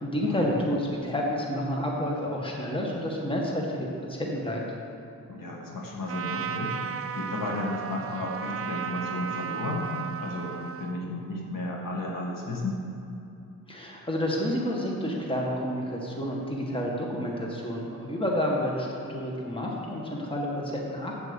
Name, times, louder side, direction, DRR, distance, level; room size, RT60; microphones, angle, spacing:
voice 1, 0.0-4.6 13.7-21.2, equal, 15° left, -2 dB, 1.7 m, -29 dB
voice 2, 5.3-9.9 10.2-12.8, left 2 dB, 65° left, -2 dB, 2.0 m, -33 dB
Trumpet, 6.1-11.0, right 7 dB, 40° right, 0.5 m, -35 dB
8.2 x 7.8 x 7.1 m, 2.8 s
wide cardioid pair, 110°, 35 cm